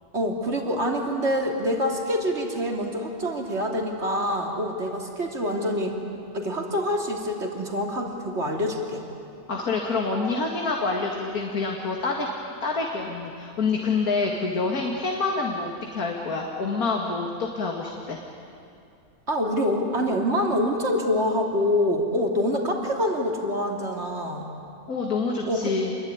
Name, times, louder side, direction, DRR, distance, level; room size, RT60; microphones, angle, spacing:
voice 1, 0.1-6.0 6.3-9.0 19.3-24.5 25.4-25.7, equal, 50° right, 1 dB, 3.3 m, -26 dB
voice 2, 9.5-12.3 12.6-18.2 24.9-26.0, left 4 dB, 80° left, 0 dB, 2.6 m, -27 dB
27.5 x 22.0 x 9.7 m, 2.6 s
omnidirectional pair, 1.5 m